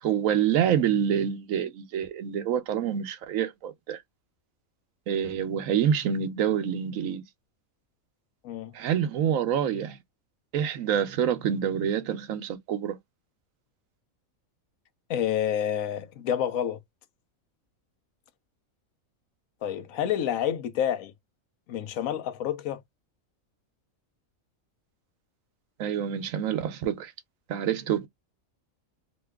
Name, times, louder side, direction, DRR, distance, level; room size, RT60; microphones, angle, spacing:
voice 1, 0.0-4.0 5.1-7.2 8.7-10.0 10.5-13.0 25.8-27.1 27.5-28.1, right 9 dB, 75° right, 1.0 m, -27 dB
voice 2, 8.4-8.7 15.1-16.8 19.6-21.1 21.7-22.8, left 10 dB, 75° left, 1.0 m, -28 dB
3.0 x 2.2 x 3.3 m
omnidirectional pair, 1.5 m